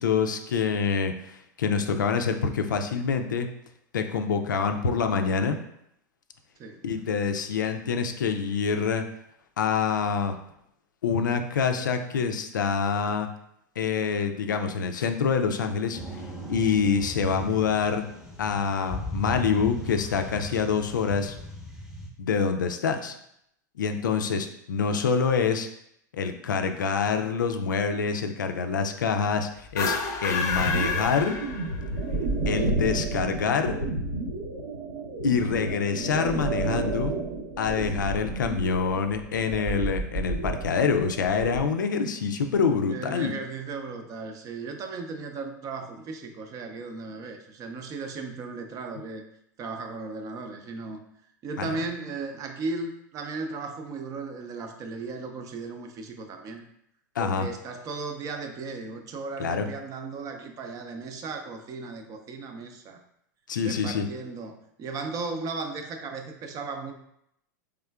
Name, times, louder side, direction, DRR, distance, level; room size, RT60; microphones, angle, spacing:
voice 1, 0.0-3.5 3.9-5.6 6.8-9.0 9.6-10.3 11.0-13.3 13.8-16.0 16.5-18.0 18.4-21.4 22.2-23.2 23.8-25.7 26.1-30.0 30.2-31.4 32.5-33.8 35.2-37.1 37.6-43.3 51.6-51.7 57.2-57.5 59.4-59.7 63.5-64.1, left 6 dB, 85° left, 7 dB, 0.4 m, -26 dB
sound 1, 15.9-22.1, equal, 5° right, 0.8 m, -37 dB
sound 2, 29.6-32.0, left 5 dB, 30° left, 0.6 m, -29 dB
sound 3, 30.5-41.6, right 2 dB, 75° right, 0.8 m, -31 dB
voice 2, 39.5-40.0 42.9-49.2 49.6-51.0 51.4-56.6 57.2-63.0 63.6-66.9, right 4 dB, 35° right, 5 dB, 0.5 m, -36 dB
3.6 x 3.4 x 2.3 m, 0.75 s
hypercardioid pair, 100°, 10 cm